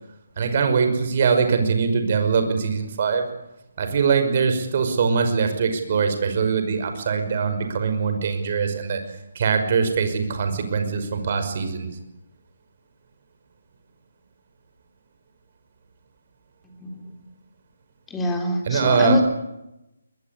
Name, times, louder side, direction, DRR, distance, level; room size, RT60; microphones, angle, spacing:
voice 1, 0.4-3.3 3.8-9.0 9.4-11.9 18.6-19.2, right 5 dB, 40° right, 7 dB, 5.7 m, -22 dB
voice 2, 16.6-17.1 18.1-19.2, left 2 dB, 10° left, 3 dB, 4.0 m, -26 dB
22.5 x 21.5 x 9.8 m, 0.90 s
figure-of-eight pair, 145°, 0 cm